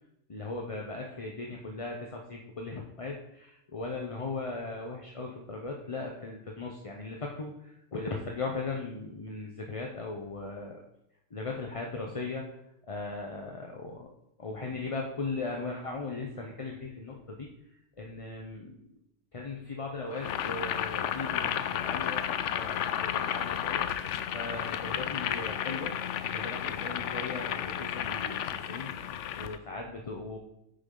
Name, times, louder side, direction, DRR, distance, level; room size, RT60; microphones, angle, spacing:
voice 1, 0.3-10.8 11.3-12.6 12.9-14.1 14.4-18.9 19.3-23.9 24.3-26.0 26.2-28.9 29.4-30.4, left 3 dB, 30° left, 1 dB, 0.7 m, -38 dB
Boiling, 20.1-29.6, left 10 dB, 70° left, 0.9 m, -32 dB
9.4 x 6.9 x 3.9 m, 0.83 s
omnidirectional pair, 1.4 m